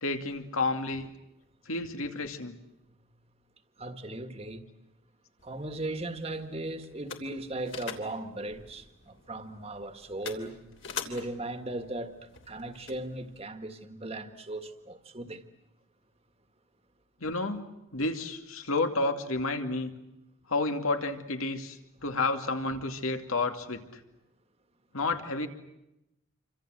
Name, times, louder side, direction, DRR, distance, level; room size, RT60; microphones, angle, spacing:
voice 1, 0.0-1.1 1.7-2.5 17.2-17.7 17.9-19.9 20.5-23.8 24.9-25.5, left 3 dB, 85° left, 2.5 m, -30 dB
voice 2, 3.8-4.6 5.4-10.7 11.0-15.4 22.0-22.2, right 2 dB, 30° right, 1.8 m, -38 dB
sound 1, 5.4-13.4, left 6 dB, 65° left, 3.1 m, -45 dB
28.0 x 25.5 x 7.8 m
head